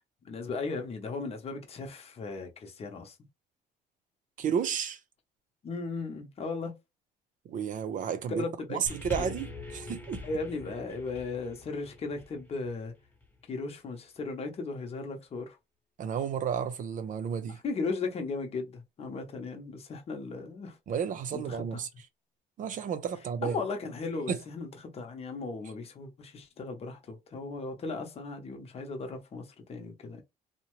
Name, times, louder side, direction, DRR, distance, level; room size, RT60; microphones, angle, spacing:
voice 1, 0.2-3.2 5.6-6.7 8.3-9.3 10.2-12.9 13.5-15.6 17.5-20.8 21.3-21.8 23.4-30.2, left 3 dB, 35° left, 0.8 m, -37 dB
voice 2, 4.4-5.0 7.5-8.4 8.7-10.2 16.0-17.6 20.9-21.9 22.6-23.5 24.3-24.4, right 7 dB, 50° right, 0.6 m, -32 dB
sound 1, 8.9-13.4 14.2-14.3, left 3 dB, 10° left, 0.9 m, -43 dB
2.8 x 2.1 x 3.0 m
cardioid pair, 110°, 17 cm